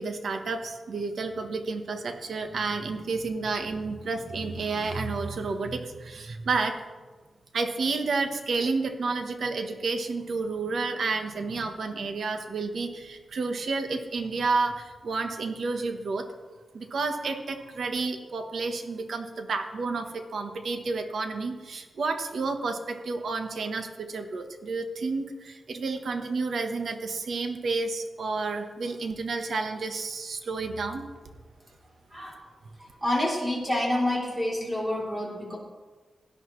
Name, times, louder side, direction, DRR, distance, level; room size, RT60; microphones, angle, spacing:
voice 1, 0.0-6.7 7.5-16.3 16.7-31.0, right 3 dB, 65° right, 6 dB, 1.1 m, -30 dB
voice 2, 32.1-32.4 32.8-35.6, left 1 dB, 15° right, -4 dB, 3.3 m, -28 dB
17.0 x 10.5 x 3.2 m, 1.4 s
wide cardioid pair, 135°, 0 cm